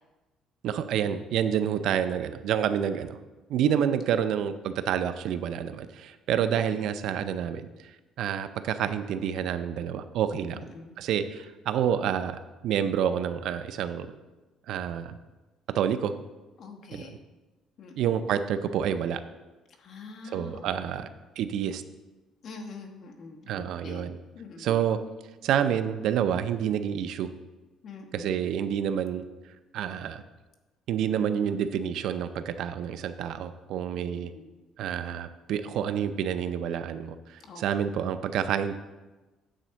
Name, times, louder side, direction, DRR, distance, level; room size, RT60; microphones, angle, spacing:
voice 1, 0.6-3.2 3.5-7.7 8.2-10.6 11.0-14.1 14.7-15.2 15.7-16.1 16.9-17.2 18.0-19.2 20.2-21.1 21.4-21.8 23.5-24.2 24.6-25.0 25.4-27.3 28.1-29.2 29.7-30.2 30.9-34.3 34.8-38.7, right 9 dB, 65° right, 11 dB, 0.5 m, -28 dB
voice 2, 6.3-6.8 10.5-11.0 16.6-17.2 17.8-18.1 19.8-20.7 22.4-24.1 24.3-24.8 27.8-28.3 34.0-34.1 34.3-34.4 37.4-37.6, left 4 dB, 45° left, 2 dB, 1.2 m, -45 dB
9.0 x 4.2 x 6.8 m, 1.1 s
cardioid pair, 145°, 0 cm